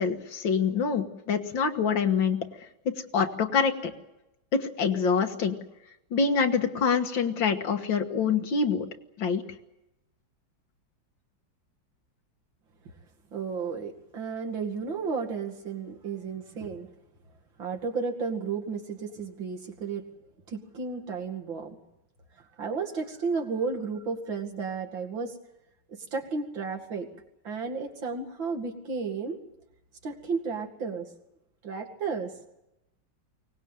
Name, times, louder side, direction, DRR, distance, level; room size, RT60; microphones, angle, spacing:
voice 1, 0.0-2.4 2.9-3.9 4.5-5.6 6.1-8.9 9.2-9.4, left 5 dB, 85° left, 5 dB, 2.3 m, -25 dB
voice 2, 13.3-16.9 17.6-20.0 20.5-21.8 22.4-25.4 25.9-27.1 27.4-29.4 30.0-31.1 31.6-32.3, right 5 dB, 90° right, 3 dB, 3.1 m, -33 dB
23.5 x 18.5 x 9.1 m, 0.91 s
omnidirectional pair, 2.0 m